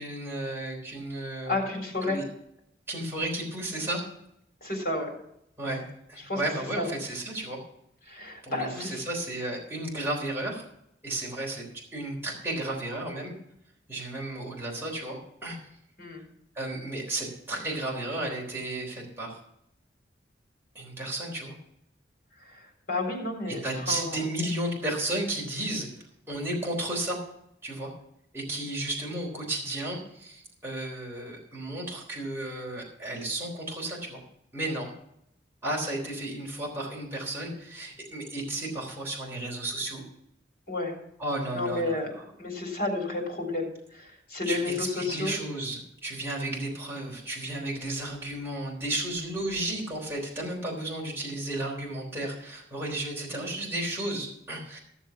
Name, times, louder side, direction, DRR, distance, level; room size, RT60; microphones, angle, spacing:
voice 1, 0.0-1.6 2.1-2.2 2.9-4.0 5.6-7.6 8.4-10.6 11.0-11.6 11.9-13.3 13.9-15.6 16.6-19.4 20.8-21.6 23.5-25.9 26.3-27.2 27.6-27.9 28.3-34.2 34.5-34.9 35.6-40.0 41.2-42.2 44.5-54.8, right 1 dB, 15° right, -3 dB, 3.6 m, -33 dB
voice 2, 1.5-2.2 4.6-5.1 6.2-6.4 6.8-6.9 8.1-9.0 16.0-16.2 22.5-22.6 22.9-23.6 23.9-24.2 40.7-40.9 41.5-42.1 42.4-45.3, left 2 dB, 50° left, 2 dB, 3.9 m, -31 dB
15.0 x 7.3 x 5.8 m, 0.75 s
head